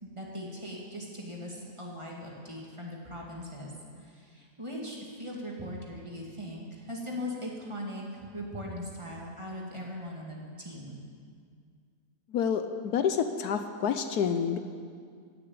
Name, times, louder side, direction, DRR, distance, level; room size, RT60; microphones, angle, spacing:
voice 1, 0.0-3.7 4.0-11.0, left 1 dB, 20° right, -3 dB, 2.2 m, -40 dB
voice 2, 12.3-14.6, left 7 dB, 75° left, 8 dB, 1.2 m, -28 dB
16.5 x 6.8 x 8.7 m, 2.1 s
omnidirectional pair, 1.7 m